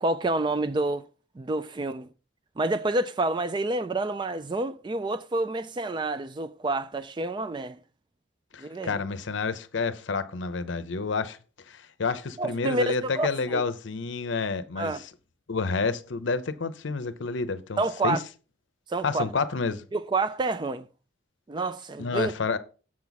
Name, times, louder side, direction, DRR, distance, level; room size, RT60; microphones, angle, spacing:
voice 1, 0.0-1.1 1.4-2.1 2.6-7.8 8.6-9.0 12.4-13.6 14.8-15.0 17.8-18.2 18.9-19.2 19.9-20.9 21.5-22.3, right 2 dB, 25° right, 0.3 m, -28 dB
voice 2, 8.5-11.4 11.7-15.1 15.5-18.2 19.0-19.8 22.0-22.6, left 4 dB, 70° left, 0.6 m, -29 dB
7.4 x 5.9 x 4.0 m
head